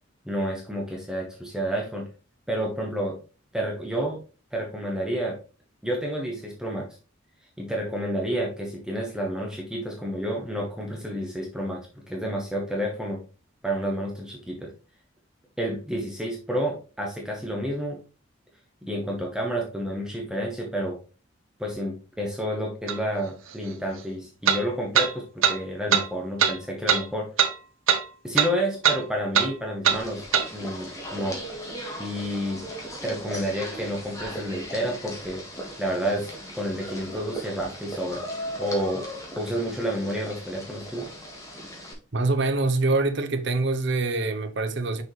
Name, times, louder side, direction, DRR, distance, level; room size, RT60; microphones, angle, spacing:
voice 1, 0.3-2.1 2.5-3.2 3.5-4.2 4.5-5.4 5.8-6.9 7.6-13.2 13.6-14.7 15.6-18.0 18.8-21.0 21.6-27.3 28.2-30.2 30.5-31.4 32.0-32.6 33.0-35.4 35.8-38.2 38.6-39.0 39.3-41.1, equal, 5° right, 1.2 m, -30 dB
sound 1, 22.9-23.0 24.5-24.6 25.0-25.1 25.4-25.6 25.9-26.1 26.4-26.5 26.9-27.0 27.4-27.5 27.9-28.0 28.4-28.5 28.8-29.0 29.3-29.5 29.8-30.0 30.3-30.5, right 7 dB, 90° right, 1.0 m, -20 dB
sound 2, 29.9-41.9, equal, 15° left, 1.7 m, -38 dB
voice 2, 42.1-45.0, right 2 dB, 60° right, 0.8 m, -24 dB
6.4 x 4.9 x 3.2 m
head